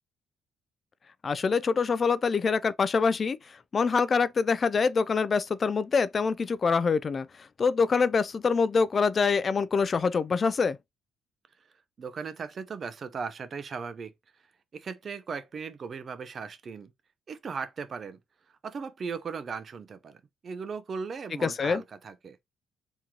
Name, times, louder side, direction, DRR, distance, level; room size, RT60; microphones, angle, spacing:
voice 1, 1.2-10.8 21.4-21.8, left 5 dB, 40° left, 0.3 m, -25 dB
voice 2, 12.0-14.1 14.7-16.9 17.3-18.2 18.6-22.4, right 5 dB, 45° right, 0.6 m, -37 dB
3.7 x 3.0 x 2.8 m
cardioid pair, 90°, 0 cm